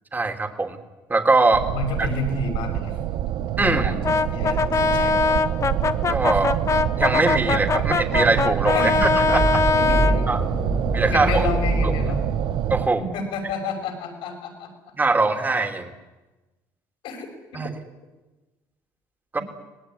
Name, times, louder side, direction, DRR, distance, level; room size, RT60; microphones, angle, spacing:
voice 1, 0.1-0.8 1.1-1.7 3.6-3.9 6.1-6.5 7.0-9.6 10.3-10.4 10.9-11.5 11.8-11.9 12.7-13.0 15.0-15.9 17.5-17.7 19.3-19.4, right 3 dB, 20° right, 6 dB, 3.2 m, -21 dB
sound 1, 1.5-12.9, right 11 dB, 70° right, 1.2 m, -26 dB
voice 2, 1.7-3.0 3.6-5.4 8.7-9.0 9.7-10.3 11.1-12.2 13.0-14.7 17.0-17.7 19.3-19.4, left 3 dB, 80° left, 5 dB, 6.0 m, -30 dB
Brass instrument, 4.0-10.2, left 5 dB, 40° left, 1.4 m, -22 dB
sound 2, 9.2-12.6, right 1 dB, 5° right, 3.0 m, -26 dB
25.5 x 19.0 x 10.0 m, 1.1 s
cardioid pair, 90°, 8 cm